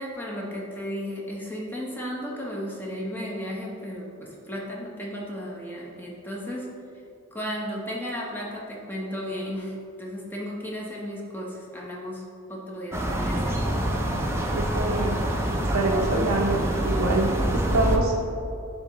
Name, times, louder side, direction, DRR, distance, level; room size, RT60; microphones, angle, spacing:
voice 1, 0.0-6.7 7.3-12.2 12.5-13.6, equal, 10° left, -3 dB, 0.8 m, -34 dB
sound 1, 12.9-18.0, right 1 dB, 10° right, 0.4 m, -26 dB
voice 2, 14.5-15.3 15.6-18.1, right 2 dB, 90° right, -2 dB, 0.6 m, -26 dB
10.0 x 3.6 x 3.0 m, 2.6 s
head